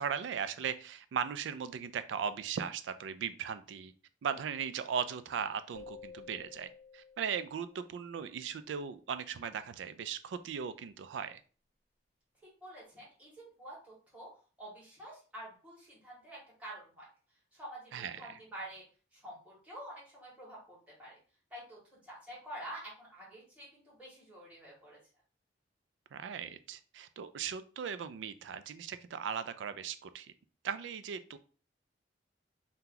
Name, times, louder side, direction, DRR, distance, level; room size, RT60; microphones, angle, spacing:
voice 1, 0.0-3.9 4.2-6.7 6.9-11.4 17.9-18.4 26.1-30.3 30.6-31.4, right 7 dB, 85° right, 13 dB, 0.3 m, -38 dB
sound 1, 5.7-8.4, left 5 dB, 85° left, 0.5 m, -53 dB
voice 2, 12.4-14.3 14.6-17.1 17.5-18.8 19.1-21.2 21.5-25.0, right 1 dB, 10° right, -7 dB, 1.4 m, -48 dB
2.8 x 2.2 x 3.7 m, 0.38 s
head